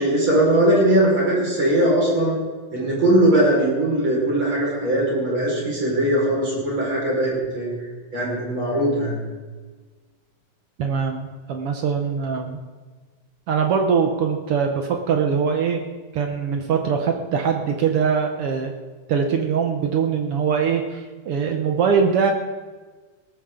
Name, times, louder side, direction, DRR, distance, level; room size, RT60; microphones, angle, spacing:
voice 1, 0.0-2.3 2.7-7.7 8.1-9.2, right 1 dB, 35° right, -4 dB, 5.7 m, -20 dB
voice 2, 10.8-12.6 13.5-15.8 16.1-18.7 19.1-22.3, right 6 dB, 70° right, 4 dB, 1.4 m, -22 dB
18.5 x 13.5 x 3.8 m, 1.4 s
omnidirectional pair, 3.7 m